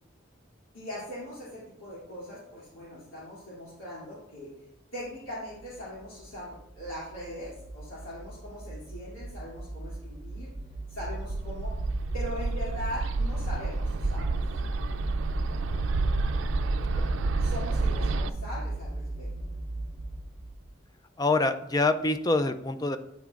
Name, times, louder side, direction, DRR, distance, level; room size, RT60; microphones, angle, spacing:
voice 1, 0.7-4.5 4.9-10.5 10.9-11.7 12.1-14.4 17.4-19.3, left 1 dB, 85° left, -9 dB, 2.7 m, -40 dB
sound 1, 5.5-20.8, right 2 dB, 25° right, 0.6 m, -37 dB
Bird, 11.0-18.3, right 3 dB, 70° right, 0.4 m, -30 dB
voice 2, 21.2-23.0, left 2 dB, 20° left, 10 dB, 0.3 m, -25 dB
9.2 x 8.3 x 2.5 m, 0.81 s
head